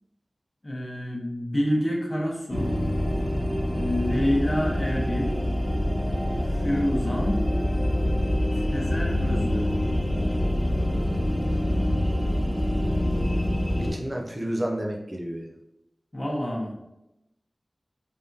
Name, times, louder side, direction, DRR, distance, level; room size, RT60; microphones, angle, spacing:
voice 1, 0.6-2.8 3.8-5.3 6.5-7.4 8.5-9.7 16.1-16.7, equal, 30° left, -2 dB, 1.0 m, -28 dB
sound 1, 2.5-13.9, left 1 dB, 15° right, 1.3 m, -25 dB
voice 2, 13.8-15.5, right 1 dB, 30° right, 1 dB, 0.5 m, -31 dB
3.5 x 3.4 x 2.7 m, 0.88 s
wide cardioid pair, 60°, 0 cm